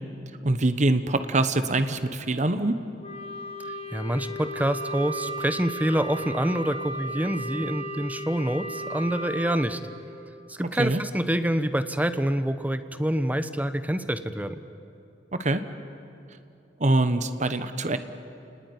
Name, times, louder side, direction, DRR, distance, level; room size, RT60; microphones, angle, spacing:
voice 1, 0.4-2.7 10.8-11.0 15.3-15.6 16.8-18.0, right 2 dB, 40° right, 10 dB, 1.2 m, -24 dB
Wind instrument woodwind instrument, 3.0-9.7, right 1 dB, 35° left, 1.5 m, -35 dB
voice 2, 3.9-9.8 10.5-14.6, right 1 dB, 10° right, 11 dB, 0.9 m, -26 dB
29.5 x 20.0 x 9.6 m, 2.7 s
head